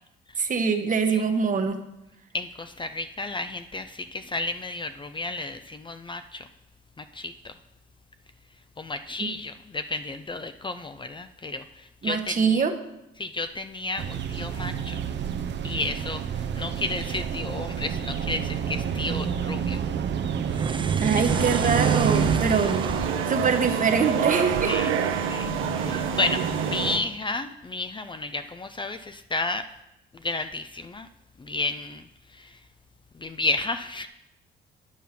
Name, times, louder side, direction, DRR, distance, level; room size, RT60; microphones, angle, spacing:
voice 1, 0.4-1.8 9.2-9.3 12.0-12.7 21.0-22.8 23.2-24.7, right 5 dB, 40° right, 6 dB, 1.1 m, -24 dB
voice 2, 2.3-6.5 7.0-7.5 8.8-12.7 13.2-15.0 15.6-19.8 24.7-25.0 25.3-25.5 25.8-29.6 30.1-31.1 31.4-32.0 32.3-32.6 33.1-34.1, left 2 dB, 25° left, 9 dB, 0.5 m, -32 dB
sound 1, 14.0-22.4, right 8 dB, 65° right, 0.8 m, -28 dB
sound 2, 20.4-24.9, right 5 dB, 25° right, 0.5 m, -32 dB
sound 3, 21.3-27.0, right 6 dB, 85° right, 1.0 m, -26 dB
9.7 x 5.4 x 5.9 m, 0.88 s
cardioid pair, 90°, 20 cm